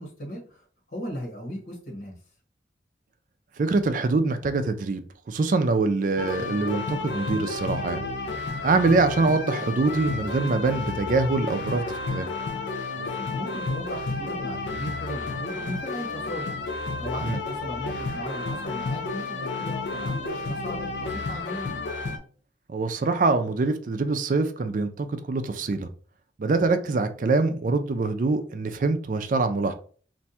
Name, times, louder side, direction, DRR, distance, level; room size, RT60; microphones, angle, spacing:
voice 1, 0.0-2.1 12.9-16.5 17.0-21.7, equal, 55° left, 1.1 m, -37 dB
voice 2, 3.6-5.0 5.3-8.0 8.6-12.3 17.2-17.4 22.7-25.9 26.4-29.7, right 3 dB, 45° right, 0.4 m, -24 dB
sound 1, 6.2-22.2, left 3 dB, 75° left, 0.5 m, -31 dB
2.6 x 2.2 x 4.1 m
head